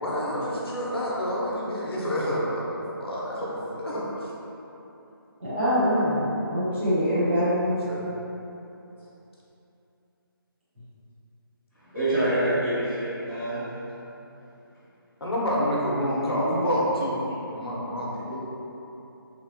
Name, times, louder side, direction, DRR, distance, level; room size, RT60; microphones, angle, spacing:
voice 1, 0.0-4.0 7.7-8.0 15.2-17.2 17.5-18.3, equal, 80° left, -6 dB, 0.8 m, -28 dB
voice 2, 5.4-6.2 6.5-7.9 16.2-16.5, equal, 25° right, -14 dB, 1.1 m, -24 dB
voice 3, 11.9-13.6 18.2-18.3, right 1 dB, 5° right, -26 dB, 0.4 m, -26 dB
3.3 x 2.2 x 2.6 m, 3.0 s
figure-of-eight pair, 170°, 13 cm